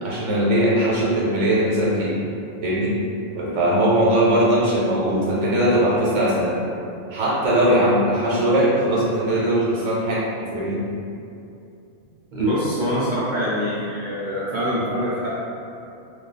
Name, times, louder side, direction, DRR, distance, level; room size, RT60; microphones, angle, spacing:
voice 1, 0.0-2.2 2.6-3.0 3.3-6.6 7.1-10.8, right 1 dB, 90° right, -7 dB, 1.0 m, -20 dB
voice 2, 12.3-15.4, equal, 50° right, -8 dB, 0.6 m, -24 dB
2.6 x 2.3 x 3.8 m, 2.6 s
omnidirectional pair, 1.2 m